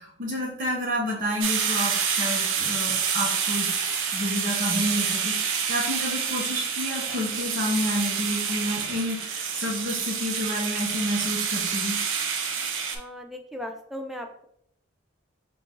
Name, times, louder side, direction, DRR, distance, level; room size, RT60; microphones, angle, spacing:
voice 1, 0.0-3.8 4.1-12.0, equal, 40° right, -5 dB, 1.2 m, -29 dB
sound 1, 1.4-13.0, right 6 dB, 65° right, 0.5 m, -28 dB
voice 2, 12.9-14.4, left 1 dB, ahead, 3 dB, 0.3 m, -37 dB
4.1 x 2.6 x 3.7 m, 0.74 s
head